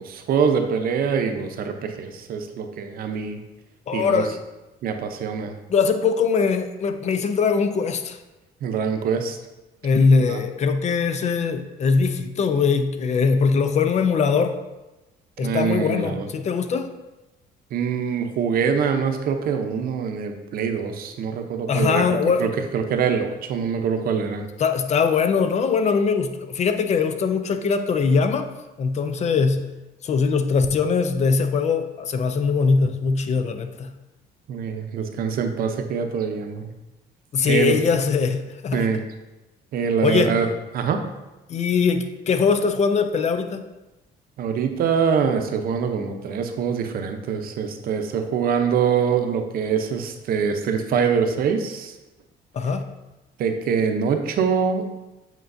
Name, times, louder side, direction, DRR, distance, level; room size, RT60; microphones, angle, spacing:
voice 1, 0.0-3.4 3.9-4.2 4.8-5.5 8.6-9.4 10.2-10.4 15.4-16.3 17.7-22.0 22.4-24.5 34.5-36.7 37.5-37.8 38.7-39.0 39.7-40.5 40.7-41.0 44.4-51.9 53.4-54.9, right 6 dB, 60° right, 6 dB, 0.7 m, -24 dB
voice 2, 3.9-4.4 5.7-8.2 9.8-14.6 15.4-16.9 21.7-22.5 24.6-28.5 28.8-29.6 30.0-33.9 37.3-38.9 40.0-40.3 41.5-43.6 52.5-52.9, left 5 dB, 40° left, 8 dB, 0.5 m, -21 dB
8.1 x 4.4 x 2.6 m, 1.0 s
cardioid pair, 110°, 17 cm